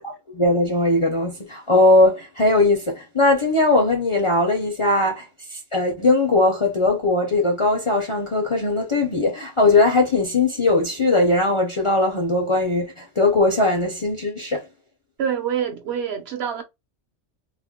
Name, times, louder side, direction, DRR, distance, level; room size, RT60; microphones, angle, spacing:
voice 1, 0.0-5.2 5.5-14.6, left 2 dB, 40° left, 0.5 m, -19 dB
voice 2, 15.2-16.6, right 8 dB, 65° right, 0.8 m, -26 dB
2.5 x 2.1 x 3.5 m
omnidirectional pair, 1.2 m